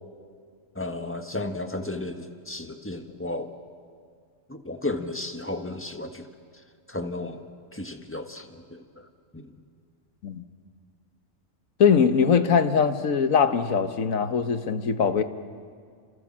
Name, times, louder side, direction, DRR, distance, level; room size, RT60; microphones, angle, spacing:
voice 1, 0.7-3.5 4.5-6.3 6.9-7.5 7.7-9.1 9.3-9.5, left 2 dB, 10° left, 6 dB, 1.5 m, -34 dB
voice 2, 11.8-15.2, left 6 dB, 90° left, 9 dB, 1.6 m, -21 dB
29.0 x 27.0 x 7.5 m, 2.1 s
omnidirectional pair, 1.4 m